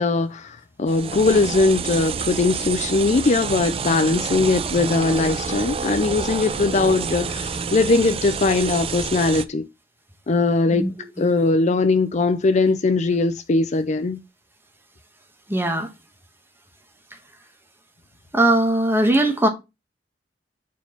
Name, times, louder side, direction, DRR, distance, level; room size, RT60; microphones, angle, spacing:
voice 1, 0.0-9.7 10.3-10.9 11.2-14.2, left 3 dB, 40° left, 0.5 m, -20 dB
sound 1, 0.9-9.4, right 5 dB, 30° right, 0.4 m, -28 dB
voice 2, 10.7-11.3 15.5-15.9 18.3-19.5, right 1 dB, 15° right, 1.2 m, -20 dB
4.6 x 4.5 x 5.5 m
head